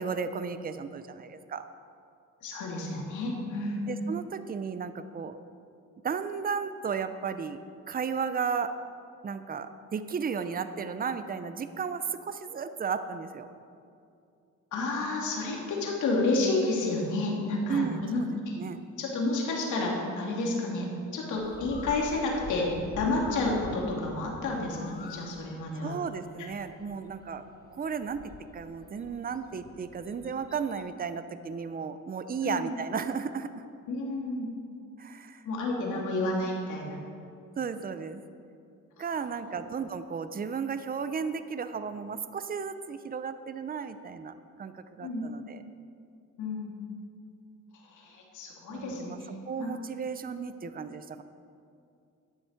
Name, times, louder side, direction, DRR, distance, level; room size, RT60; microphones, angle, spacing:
voice 1, 0.0-1.7 3.9-5.4 6.0-7.6 7.9-8.7 9.2-13.5 17.7-18.8 25.8-27.4 27.7-33.6 35.0-35.4 35.9-36.1 37.6-38.2 39.0-45.6 48.7-49.2 49.4-51.2, right 6 dB, 30° right, 11 dB, 0.7 m, -34 dB
voice 2, 2.4-3.8 14.7-18.2 18.5-18.6 19.0-26.0 32.4-32.7 33.9-34.5 35.4-37.0 45.0-45.2 46.4-46.7 47.9-49.2 49.6-49.7, left 2 dB, 80° left, -2 dB, 2.6 m, -30 dB
Bird, 21.4-31.0, left 4 dB, 30° left, 0.9 m, -47 dB
12.0 x 8.0 x 6.6 m, 2.5 s
cardioid pair, 90°, 30 cm